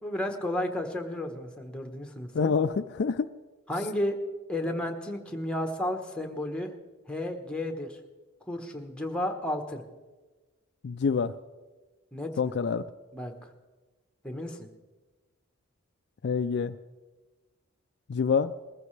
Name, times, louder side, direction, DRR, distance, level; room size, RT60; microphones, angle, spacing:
voice 1, 0.0-2.5 3.7-4.2 4.5-6.7 7.1-8.0 8.5-9.8 12.1-12.3 13.1-13.5 14.2-14.7, left 1 dB, 5° left, 4 dB, 1.2 m, -32 dB
voice 2, 2.3-3.3 10.8-11.3 12.4-12.8 16.2-16.7 18.1-18.5, left 5 dB, 55° left, 10 dB, 0.4 m, -26 dB
20.5 x 14.5 x 3.3 m, 1.2 s
head